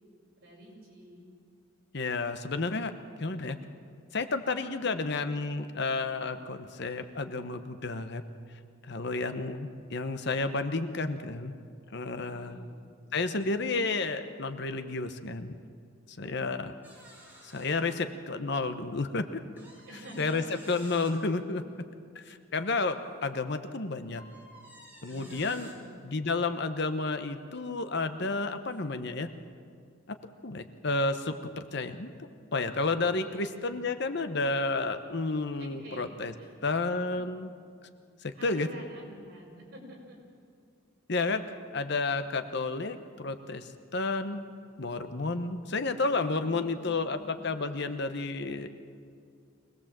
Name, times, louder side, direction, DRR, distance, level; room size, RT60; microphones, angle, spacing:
voice 1, 0.4-1.3 4.6-4.9 12.2-12.7 16.2-16.6 19.9-20.8 22.2-22.4 25.0-26.0 33.1-33.9 35.6-36.1 36.4-36.5 37.1-37.2 38.4-40.4 46.4-47.3, right 1 dB, 50° right, -2 dB, 5.6 m, -49 dB
voice 2, 1.9-2.9 3.2-3.6 4.1-8.2 8.9-11.5 11.9-12.6 13.1-15.5 16.1-16.7 17.4-19.4 20.2-21.6 22.1-24.2 25.0-25.7 26.0-29.3 30.4-36.3 36.6-37.5 38.2-38.7 41.1-41.4 41.7-44.4 44.8-48.7, left 3 dB, 55° left, 9 dB, 1.0 m, -31 dB
sound 1, 16.8-17.8 18.4-18.5 19.6-21.2 22.5-23.4 24.1-25.8 26.8-28.2 28.7-28.8 29.1-29.3, right 1 dB, 10° right, 3.9 m, -54 dB
24.5 x 18.0 x 7.4 m, 2.2 s
head